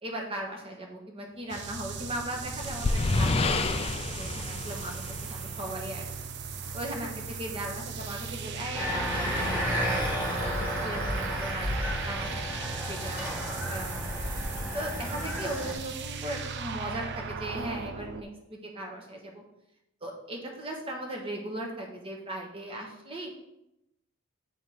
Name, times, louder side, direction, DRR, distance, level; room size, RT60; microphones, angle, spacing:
voice 1, 0.0-6.0 6.7-10.1 10.7-12.6 12.9-14.0 14.7-19.4 20.0-23.3, right 1 dB, 25° right, 0 dB, 1.2 m, -38 dB
sound 1, 1.5-18.2, right 5 dB, 50° right, 0.5 m, -37 dB
sound 2, 2.0-5.7, left 3 dB, 25° left, 0.4 m, -29 dB
sound 3, 8.7-15.7, equal, 10° right, 1.6 m, -32 dB
8.3 x 3.6 x 4.6 m, 0.85 s
head